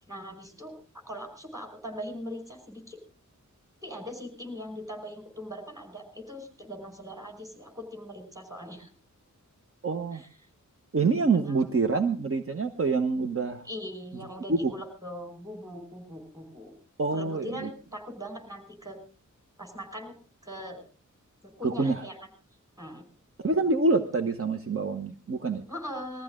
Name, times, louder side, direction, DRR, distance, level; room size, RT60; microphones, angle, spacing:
voice 1, 0.1-0.7 1.1-3.0 3.8-8.9 10.1-10.3 11.5-11.7 13.7-16.8 17.1-19.0 19.6-20.2 20.4-20.8 21.4-22.2 22.8-23.0 25.7-26.2, equal, 10° right, 5 dB, 5.0 m, -40 dB
voice 2, 9.8-10.2 10.9-13.6 14.5-14.7 17.0-17.7 21.6-22.0 23.4-25.6, right 3 dB, 45° right, 6 dB, 1.1 m, -26 dB
21.5 x 14.5 x 3.7 m, 0.35 s
wide cardioid pair, 105°, 31 cm